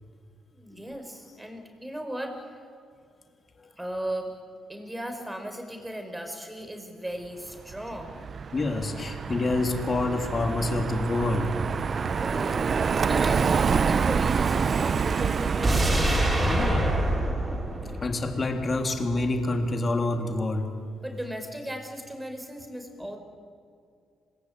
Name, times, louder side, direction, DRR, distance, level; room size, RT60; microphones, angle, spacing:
voice 1, 0.5-2.7 3.8-4.3 4.7-8.2 12.2-16.2 21.0-23.2, equal, 10° right, 5 dB, 5.2 m, -37 dB
Car passing by, 7.7-16.3, right 6 dB, 45° right, 0.7 m, -27 dB
voice 2, 8.5-11.6 16.5-16.9 18.0-20.7 23.0-23.1, left 2 dB, 35° left, 4 dB, 3.3 m, -27 dB
sound 1, 15.6-18.8 19.1-19.2, right 1 dB, 30° right, 6.2 m, -25 dB
26.5 x 20.5 x 9.0 m, 2.4 s
cardioid pair, 90°, 0 cm